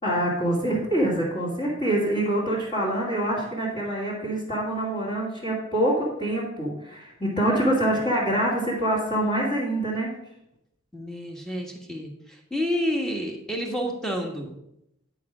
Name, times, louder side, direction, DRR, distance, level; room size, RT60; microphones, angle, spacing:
voice 1, 0.0-10.1, right 1 dB, 25° left, -9 dB, 2.4 m, -25 dB
voice 2, 10.9-12.1 12.5-14.5, equal, 5° left, 1 dB, 1.4 m, -29 dB
10.5 x 4.8 x 6.0 m, 0.81 s
head